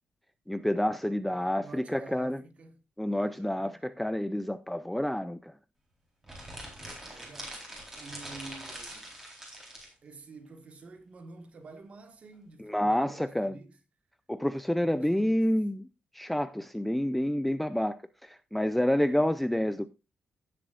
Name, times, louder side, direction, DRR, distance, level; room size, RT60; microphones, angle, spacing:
voice 1, 0.5-2.4 3.0-5.5 12.6-13.6 14.3-15.9 16.1-19.9, left 1 dB, 5° left, 0.4 m, -28 dB
voice 2, 1.3-2.8 3.1-3.8 6.6-7.7 8.0-9.1 10.0-13.8 14.8-15.4 19.0-19.4, right 3 dB, 40° right, 1.7 m, -49 dB
sound 1, 6.2-9.9, right 1 dB, 15° right, 3.9 m, -43 dB
16.0 x 7.6 x 2.5 m
cardioid pair, 155°, 3 cm